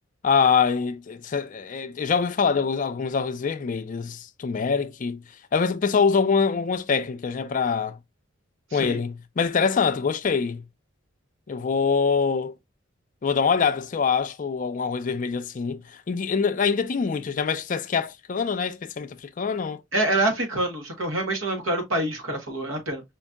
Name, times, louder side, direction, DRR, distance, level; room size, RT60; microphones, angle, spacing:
voice 1, 0.2-5.2 5.5-8.0 8.7-10.6 11.5-12.5 13.2-19.8, left 5 dB, 40° left, 0.4 m, -24 dB
voice 2, 19.9-23.0, right 1 dB, 90° right, 1.3 m, -26 dB
5.0 x 2.7 x 2.3 m
head